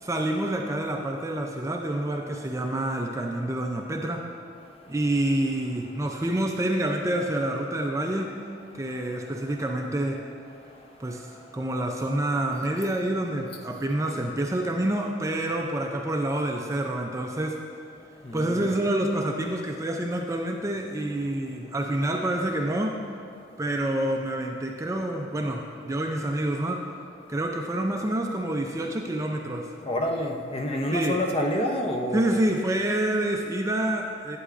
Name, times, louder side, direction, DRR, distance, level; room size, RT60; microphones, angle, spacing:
voice 1, 0.0-4.3 4.9-8.4 8.8-10.2 11.0-17.6 18.3-23.0 23.6-26.9 27.3-29.7 30.9-31.2 32.1-34.4, right 1 dB, 15° right, 2 dB, 0.4 m, -27 dB
voice 2, 18.2-18.7 29.8-32.4, left 1 dB, 30° left, 3 dB, 0.6 m, -28 dB
11.0 x 8.5 x 2.5 m, 2.4 s
head